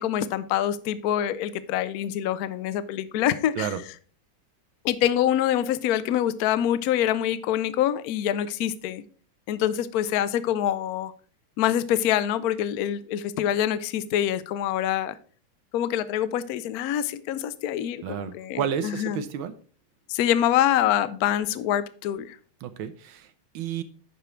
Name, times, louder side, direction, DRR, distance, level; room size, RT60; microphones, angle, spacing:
voice 1, 0.0-3.7 4.8-9.0 9.5-11.1 11.6-15.2 15.7-19.2 20.1-22.4, left 11 dB, 75° left, 0.8 m, -25 dB
voice 2, 18.0-19.5 22.6-23.3 23.5-23.8, right 8 dB, 80° right, 1.5 m, -31 dB
11.0 x 5.1 x 4.4 m
omnidirectional pair, 2.3 m